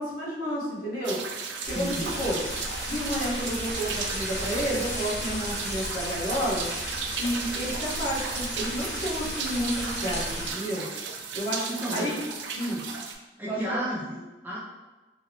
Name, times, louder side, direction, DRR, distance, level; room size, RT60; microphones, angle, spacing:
voice 1, 0.0-2.4 2.8-6.7 7.2-10.8 11.3-12.1 12.5-12.8 13.5-13.8, equal, 55° left, -8 dB, 1.2 m, -31 dB
sound 1, 1.0-13.1, right 5 dB, 85° right, 0.4 m, -35 dB
sound 2, 1.6-10.5, left 1 dB, 70° left, 0.8 m, -35 dB
voice 2, 1.7-2.1 11.7-12.2 13.4-14.6, equal, 10° right, -5 dB, 0.4 m, -32 dB
3.7 x 2.1 x 2.7 m, 1.1 s
head